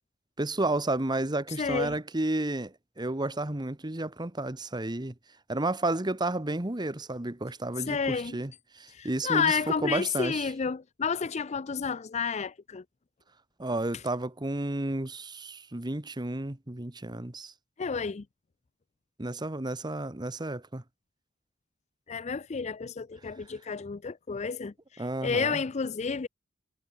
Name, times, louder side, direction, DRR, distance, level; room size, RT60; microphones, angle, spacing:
voice 1, 0.4-5.1 5.5-10.5 13.6-17.5 19.2-20.8 25.0-25.6, right 2 dB, 20° right, 1.1 m, -32 dB
voice 2, 1.6-1.9 7.9-8.4 8.9-12.8 17.8-18.2 22.1-26.3, left 5 dB, 35° left, 0.5 m, -31 dB
head